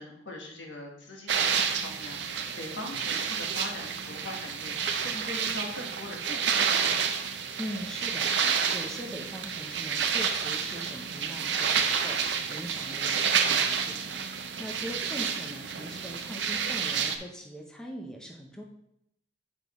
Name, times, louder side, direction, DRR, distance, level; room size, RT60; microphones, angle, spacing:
voice 1, 0.0-7.1 12.8-13.0, left 1 dB, 70° left, 0 dB, 1.4 m, -41 dB
sound 1, 1.3-17.2, right 6 dB, 65° right, 0.6 m, -29 dB
voice 2, 7.6-18.6, equal, 5° left, -1 dB, 0.6 m, -41 dB
8.1 x 5.2 x 3.0 m, 0.79 s
head